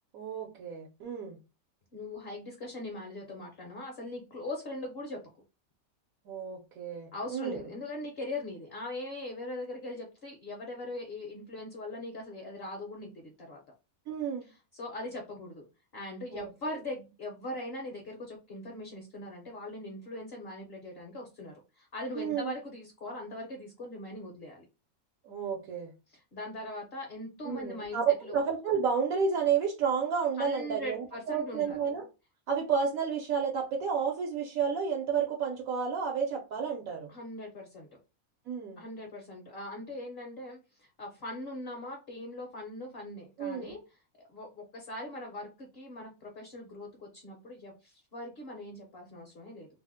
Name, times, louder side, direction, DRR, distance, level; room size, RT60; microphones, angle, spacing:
voice 1, 0.1-1.4 6.3-7.6 14.1-14.5 16.3-16.8 22.1-22.5 25.2-25.9 27.4-32.1 32.5-37.1 38.5-38.8 43.4-43.8, right 6 dB, 75° right, 1.0 m, -31 dB
voice 2, 1.9-5.2 7.1-13.6 14.7-15.6 15.9-24.7 26.1-28.4 30.4-31.9 37.1-37.9 38.8-43.8 44.3-49.7, left 1 dB, 55° left, 0.8 m, -41 dB
2.7 x 2.1 x 3.4 m
omnidirectional pair, 1.5 m